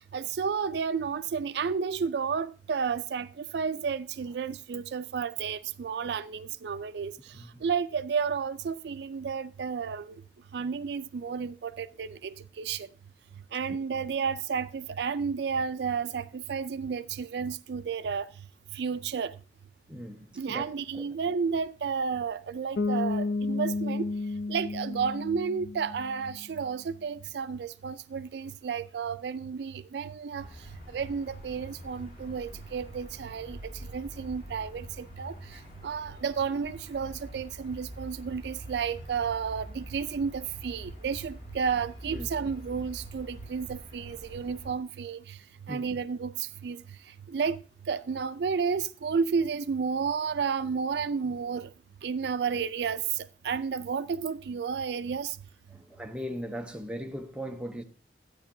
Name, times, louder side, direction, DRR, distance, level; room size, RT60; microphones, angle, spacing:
voice 1, 0.1-7.1 7.6-10.2 10.5-12.9 13.5-18.3 18.7-19.3 20.4-24.1 24.5-30.5 30.9-45.4 45.7-46.8 47.3-47.6 47.9-51.7 52.0-55.4, right 6 dB, 70° right, 0.4 m, -32 dB
voice 2, 19.9-20.7 20.9-21.1 42.1-42.3 45.7-45.8 55.7-57.8, equal, 5° right, 0.8 m, -38 dB
Bass guitar, 22.8-26.5, left 3 dB, 75° left, 0.6 m, -32 dB
sound 1, 30.4-44.7, equal, 50° left, 3.2 m, -45 dB
13.0 x 9.3 x 2.7 m
head